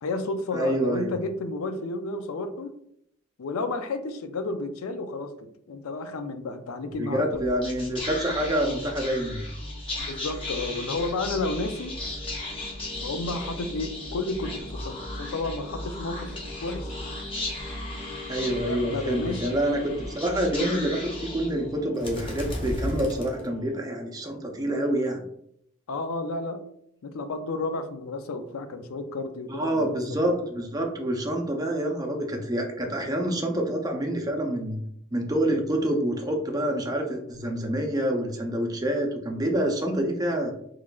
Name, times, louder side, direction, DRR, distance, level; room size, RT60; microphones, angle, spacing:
voice 1, 0.0-2.7 3.4-7.4 10.0-11.9 13.0-16.3 16.6-16.9 18.4-19.6 25.9-26.6 27.0-30.0, left 3 dB, 90° left, 8 dB, 0.4 m, -32 dB
voice 2, 0.5-1.1 7.0-9.5 18.3-25.2 29.5-34.8 35.1-40.5, right 1 dB, 20° right, 2 dB, 0.5 m, -27 dB
Whispering, 7.3-23.9, left 1 dB, 25° left, 0.7 m, -35 dB
3.7 x 3.1 x 2.3 m, 0.72 s
head